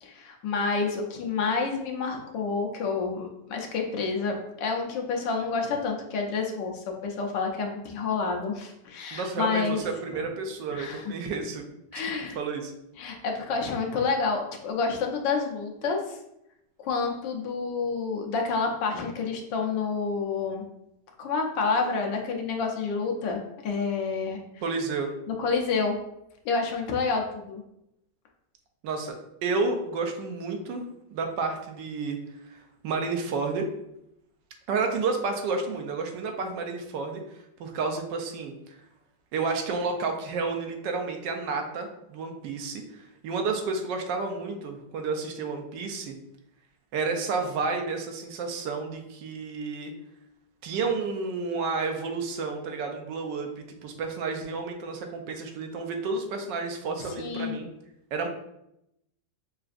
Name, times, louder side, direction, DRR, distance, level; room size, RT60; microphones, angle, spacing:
voice 1, 0.0-9.8 10.1-10.2 10.7-11.1 11.9-12.4 13.0-16.2 16.8-20.6 21.2-24.4 25.3-26.0 26.4-27.6 57.1-57.6, left 4 dB, 85° left, 2 dB, 1.3 m, -29 dB
voice 2, 9.1-11.6 11.9-12.0 12.4-12.7 24.6-25.2 28.8-30.8 31.1-32.2 32.5-33.7 34.7-37.2 37.6-38.8 39.3-46.1 46.9-49.9 50.6-57.7 58.1-58.3, right 4 dB, 85° right, 4 dB, 1.3 m, -31 dB
5.8 x 2.4 x 2.5 m, 0.82 s
omnidirectional pair, 1.9 m